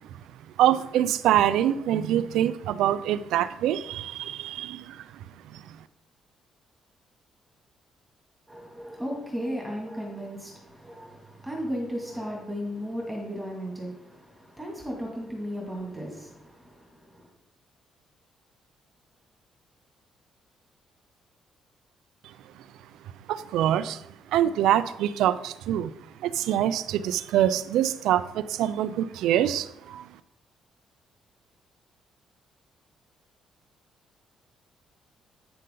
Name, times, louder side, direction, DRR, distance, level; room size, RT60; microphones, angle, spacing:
voice 1, 0.6-5.0 5.5-5.6 23.3-24.0 24.3-25.9 26.2-30.1, right 11 dB, 85° right, 0.4 m, -25 dB
voice 2, 8.5-17.3, equal, 5° right, 2.3 m, -35 dB
8.9 x 6.7 x 3.8 m
cardioid pair, 90°, 0 cm